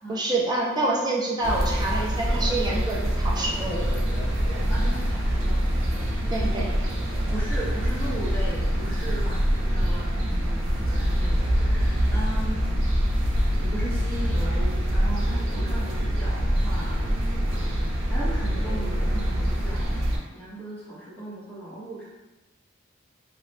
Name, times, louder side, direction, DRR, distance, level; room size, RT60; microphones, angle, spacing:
voice 1, 0.1-3.9 6.3-6.6, right 2 dB, 20° right, -3 dB, 0.5 m, -27 dB
sound 1, 1.4-20.2, equal, 85° right, 0.5 m, -25 dB
voice 2, 4.7-5.8 6.3-6.8 7.3-12.7 13.6-17.1 17.7-22.1, right 1 dB, 10° left, -8 dB, 0.8 m, -37 dB
2.7 x 2.0 x 3.2 m, 1.1 s
head